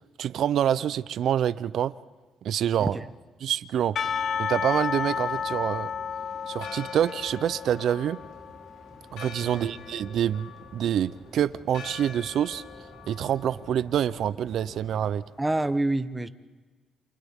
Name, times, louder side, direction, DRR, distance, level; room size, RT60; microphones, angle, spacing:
voice 1, 0.2-1.9 2.4-3.0 3.4-4.0 4.4-5.9 6.5-8.2 9.1-12.6 13.1-15.2, right 10 dB, 70° right, 16 dB, 0.5 m, -26 dB
sound 1, 3.8-15.1, equal, 15° left, 4.0 m, -51 dB
Percussion / Church bell, 4.0-9.0, left 7 dB, 55° left, 0.6 m, -32 dB
Church bell, 6.5-15.4, left 7 dB, 90° left, 2.8 m, -47 dB
voice 2, 9.4-9.9 15.4-16.3, right 2 dB, 15° right, 12 dB, 1.0 m, -28 dB
29.5 x 27.5 x 3.6 m, 1.4 s
cardioid pair, 90°, 0 cm